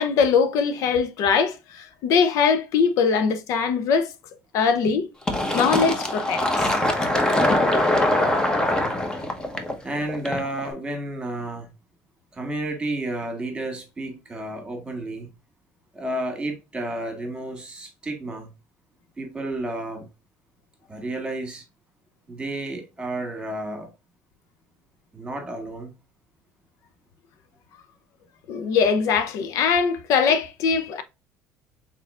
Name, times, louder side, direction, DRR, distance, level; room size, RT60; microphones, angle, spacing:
voice 1, 0.0-4.1 4.5-5.1 5.5-6.7 28.5-31.0, left 6 dB, 65° left, 0.6 m, -21 dB
Fill (with liquid), 5.3-10.7, left 1 dB, 15° left, 0.9 m, -22 dB
voice 2, 9.8-11.7 12.3-15.3 15.9-18.5 19.2-20.1 20.9-21.6 22.3-23.9 25.1-25.9, right 1 dB, 15° right, 1.8 m, -31 dB
4.2 x 3.8 x 2.4 m
cardioid pair, 115°, 6 cm